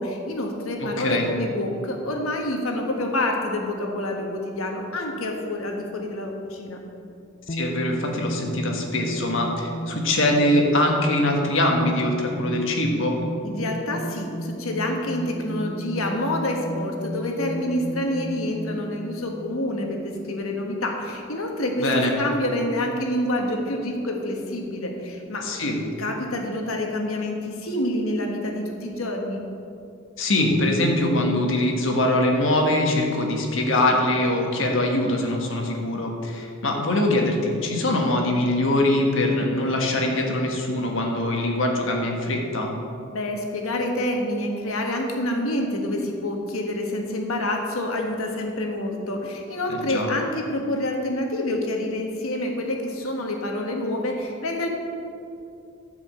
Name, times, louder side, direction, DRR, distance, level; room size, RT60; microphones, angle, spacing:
voice 1, 0.0-6.8 13.4-25.5 26.0-29.4 43.1-54.7, left 1 dB, 80° left, 2 dB, 1.4 m, -27 dB
voice 2, 0.8-1.2 7.5-13.2 21.8-22.1 25.4-25.8 30.2-42.7 49.7-50.1, left 1 dB, 65° left, 1 dB, 1.5 m, -23 dB
sound 1, 7.5-20.3, equal, 35° left, 0.6 m, -34 dB
11.5 x 5.1 x 7.5 m, 2.6 s
head